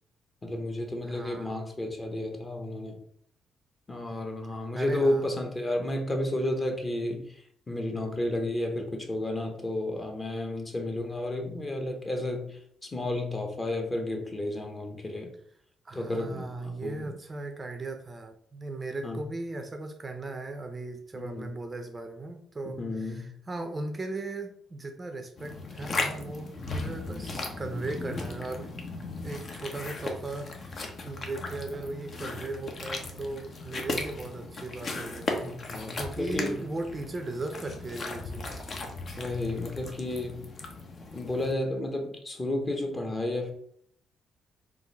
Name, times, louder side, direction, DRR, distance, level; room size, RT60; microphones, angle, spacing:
voice 1, 0.4-3.0 3.9-15.3 15.9-17.1 19.0-19.2 21.1-21.6 22.6-23.3 26.6-26.7 35.4-36.6 39.2-40.5 41.1-43.5, left 1 dB, 25° left, 3 dB, 0.9 m, -32 dB
voice 2, 1.0-1.5 4.7-5.3 15.8-28.7 29.2-35.3 35.9-38.6, right 2 dB, 30° right, 6 dB, 0.5 m, -37 dB
sound 1, 25.4-41.5, left 3 dB, 50° left, 0.7 m, -37 dB
3.7 x 2.5 x 4.1 m, 0.65 s
cardioid pair, 90°, 0 cm